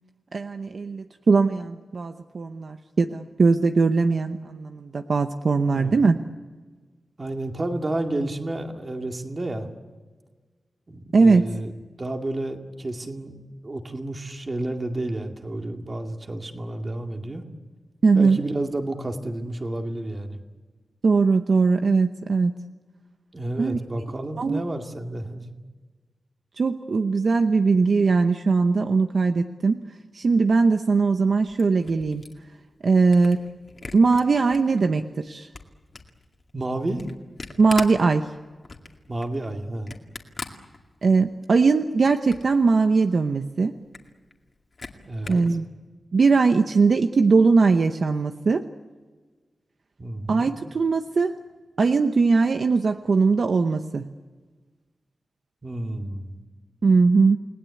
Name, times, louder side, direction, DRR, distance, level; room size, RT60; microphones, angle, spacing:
voice 1, 0.3-6.2 11.1-11.4 18.0-18.4 21.0-22.5 23.6-23.8 24.4-24.6 26.6-29.8 30.1-32.3 32.8-33.4 33.9-35.5 37.6-38.3 41.0-43.7 45.3-45.6 46.1-48.7 50.3-51.4 51.8-54.1 56.8-57.4, right 4 dB, 55° right, 7 dB, 0.9 m, -20 dB
voice 2, 7.2-9.7 10.9-11.7 12.0-17.4 18.1-20.4 23.3-25.5 36.5-37.1 39.1-39.9 45.1-45.4 50.0-50.5 55.6-56.4, right 1 dB, 30° right, 4 dB, 2.2 m, -31 dB
Camera, 31.2-34.9 35.3-41.3 41.7-42.6 43.0-43.1 43.3-43.4 43.7-45.5, left 3 dB, 40° left, 2.2 m, -41 dB
29.5 x 19.5 x 8.4 m, 1.4 s
wide cardioid pair, 165°, 0 cm